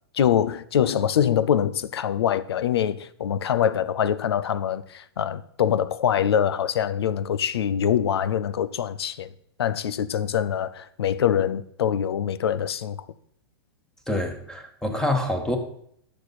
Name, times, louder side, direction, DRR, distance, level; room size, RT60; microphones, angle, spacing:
voice 1, 0.1-9.3 9.6-13.0, left 9 dB, 75° left, 0.6 m, -24 dB
voice 2, 14.1-15.6, left 1 dB, 5° left, 1.6 m, -26 dB
12.0 x 6.8 x 4.2 m
hypercardioid pair, 120°, 13 cm